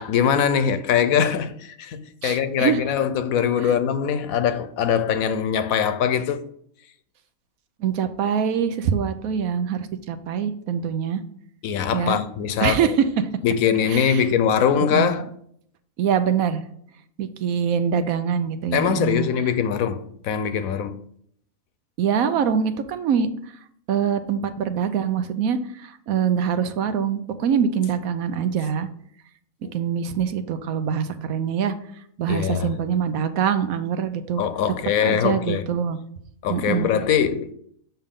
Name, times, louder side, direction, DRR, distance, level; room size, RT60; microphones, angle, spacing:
voice 1, 0.0-6.4 11.6-12.9 13.4-15.3 18.7-21.0 29.6-29.7 32.3-32.7 34.4-35.7 36.4-37.5, left 8 dB, 80° left, 1.1 m, -22 dB
voice 2, 2.2-2.8 3.6-3.7 7.8-11.2 11.9-12.2 12.6-13.3 13.9-14.2 14.9-15.2 16.0-16.6 17.2-19.3 22.0-23.3 23.9-28.9 29.7-31.7 32.2-34.4 35.0-36.0 36.5-36.9, right 7 dB, 80° right, 1.1 m, -24 dB
7.0 x 5.5 x 3.7 m
omnidirectional pair, 1.5 m